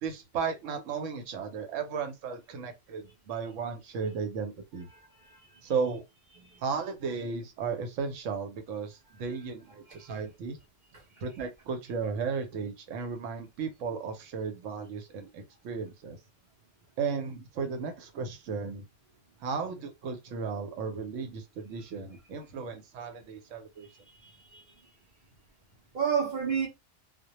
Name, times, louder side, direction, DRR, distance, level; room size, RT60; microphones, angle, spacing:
voice 1, 0.0-4.9 5.6-6.0 6.6-10.6 11.2-16.2 17.0-18.9 19.4-23.9, right 5 dB, 80° right, 0.9 m, -35 dB
voice 2, 4.9-5.5 6.4-6.6 9.9-10.0 24.2-24.6 25.9-26.7, right 7 dB, 50° right, 0.6 m, -31 dB
2.1 x 2.1 x 2.8 m
omnidirectional pair, 1.3 m